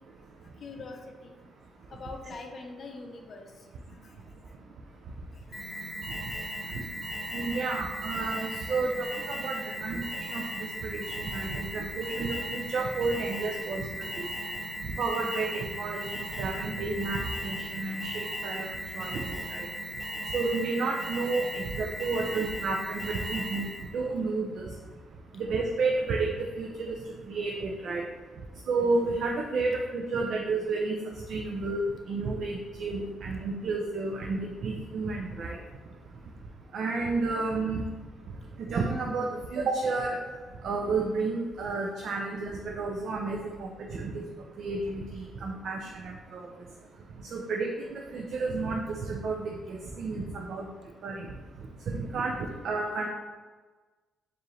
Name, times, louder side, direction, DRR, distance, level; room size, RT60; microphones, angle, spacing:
voice 1, 0.6-1.3 1.9-3.5 6.7-6.8 22.2-22.4, left 3 dB, 50° left, 3 dB, 0.6 m, -43 dB
Alarm, 5.5-23.9, equal, 20° left, 1.2 m, -37 dB
voice 2, 7.3-10.0 10.3-14.1 15.0-19.7 20.3-24.7 25.3-27.0 27.3-28.0 28.7-31.0 31.3-31.8 32.1-35.6 36.7-37.8 38.6-40.2 40.6-44.2 44.6-46.5 47.3-50.7 51.0-51.3 51.9-53.1, right 3 dB, 65° right, 0 dB, 0.4 m, -31 dB
4.6 x 2.5 x 3.1 m, 1.3 s
cardioid pair, 80°, 0 cm